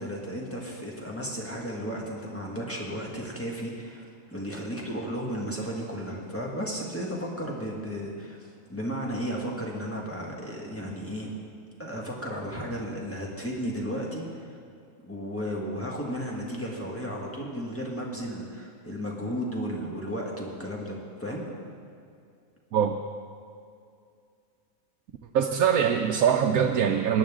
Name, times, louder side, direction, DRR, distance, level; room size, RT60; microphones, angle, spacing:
voice 1, 0.0-4.0 4.3-11.3 11.8-14.6 15.0-21.5, equal, 10° left, -2 dB, 1.7 m, -34 dB
voice 2, 22.7-23.0 25.3-27.2, right 8 dB, 85° right, 2 dB, 1.1 m, -23 dB
18.0 x 10.5 x 3.7 m, 2.3 s
omnidirectional pair, 1.5 m